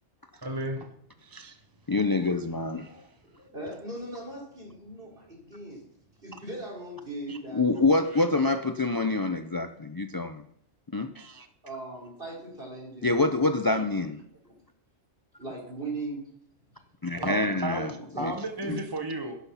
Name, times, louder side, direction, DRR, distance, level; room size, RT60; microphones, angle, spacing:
voice 1, 0.4-0.9 17.2-17.8 18.2-19.4, right 2 dB, 20° right, 4 dB, 1.0 m, -33 dB
voice 2, 1.9-3.0 7.3-10.4 10.9-11.5 13.0-14.2 17.0-17.9 18.2-18.3 18.6-18.8, left 3 dB, 30° left, 8 dB, 0.4 m, -26 dB
voice 3, 3.2-5.8 6.2-7.6 8.3-8.6 11.6-13.4 14.4-14.6 15.4-16.3 17.1-18.3, right 2 dB, 50° right, -2 dB, 4.5 m, -39 dB
11.5 x 10.0 x 5.7 m, 0.67 s
omnidirectional pair, 1.2 m